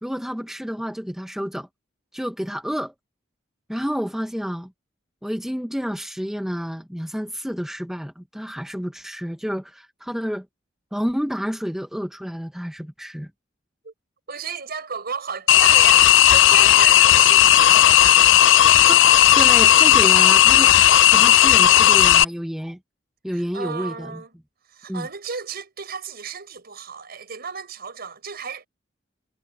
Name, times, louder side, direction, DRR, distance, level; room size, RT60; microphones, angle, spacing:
voice 1, 0.0-1.7 2.1-2.9 3.7-4.7 5.2-10.5 10.9-13.3 18.9-19.0 19.3-22.8 23.2-24.2 24.9-25.1, equal, ahead, 1.0 m, -29 dB
voice 2, 14.3-17.8 23.3-24.3 24.7-28.7, right 6 dB, 55° right, 5.7 m, -33 dB
sound 1, 15.5-22.2, left 12 dB, 70° left, 0.4 m, -13 dB
head